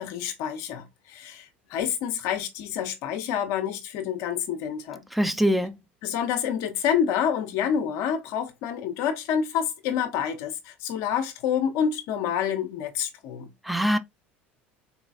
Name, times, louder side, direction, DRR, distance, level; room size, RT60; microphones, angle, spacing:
voice 1, 0.0-5.0 6.0-13.5, left 8 dB, 65° left, 0.6 m, -28 dB
voice 2, 5.1-5.7 13.7-14.0, equal, ahead, 0.4 m, -23 dB
4.0 x 2.2 x 2.3 m
hypercardioid pair, 75°, 6 cm